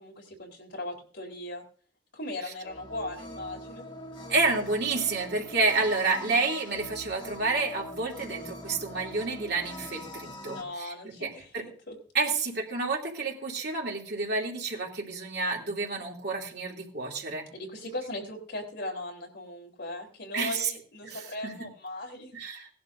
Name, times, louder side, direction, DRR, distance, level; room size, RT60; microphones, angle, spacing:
voice 1, 0.0-1.6 2.1-3.9 10.4-12.0 12.3-12.4 17.5-22.3, left 1 dB, 70° left, 0 dB, 3.7 m, -38 dB
sound 1, 2.6-10.6, left 1 dB, 25° left, 1.6 m, -43 dB
voice 2, 4.3-10.9 11.2-11.6 12.1-17.5 20.3-20.7 21.0-21.5 22.3-22.7, right 3 dB, 65° right, -1 dB, 3.0 m, -29 dB
18.5 x 11.0 x 2.7 m, 0.43 s
head